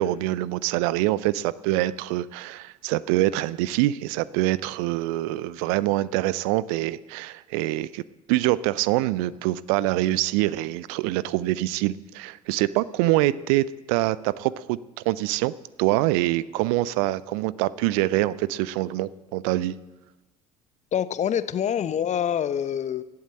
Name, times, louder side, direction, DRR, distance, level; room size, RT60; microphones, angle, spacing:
voice 1, 0.0-8.0 8.3-14.8 15.1-15.5 15.8-19.7, right 16 dB, 60° right, 20 dB, 0.5 m, -25 dB
voice 2, 20.9-23.0, left 9 dB, 35° left, 14 dB, 0.8 m, -26 dB
16.0 x 8.4 x 7.8 m, 1.1 s
figure-of-eight pair, 60°, 21 cm